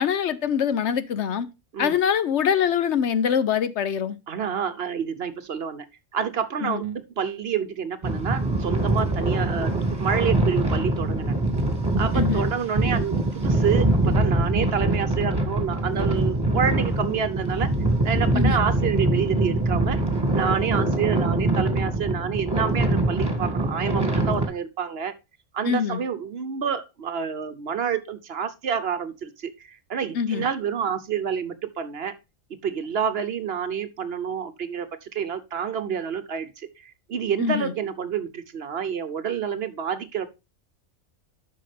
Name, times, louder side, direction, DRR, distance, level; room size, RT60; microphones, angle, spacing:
voice 1, 0.0-1.5 1.8-4.2 6.6-6.8 12.1-12.5 18.3-18.6 25.7-26.0 30.1-30.4 37.4-37.7, left 8 dB, 65° left, 1.0 m, -24 dB
voice 2, 4.3-5.9 6.1-11.3 12.0-17.7 18.0-20.0 20.3-25.1 25.5-32.1 32.6-40.3, right 7 dB, 55° right, 0.9 m, -28 dB
sound 1, 8.0-24.5, right 2 dB, 20° right, 2.0 m, -23 dB
11.5 x 5.7 x 3.3 m
omnidirectional pair, 1.3 m